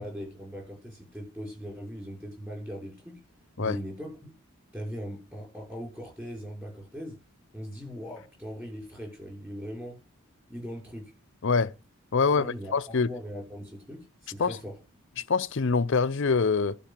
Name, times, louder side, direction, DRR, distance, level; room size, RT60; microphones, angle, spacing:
voice 1, 0.0-3.2 3.6-4.3 4.7-7.2 7.5-10.0 10.5-11.1 12.3-14.8, equal, 10° right, 5.7 m, -40 dB
voice 2, 11.4-11.7 12.1-13.1 14.4-14.6 15.3-16.8, left 4 dB, 55° left, 0.6 m, -25 dB
12.0 x 4.5 x 7.4 m
head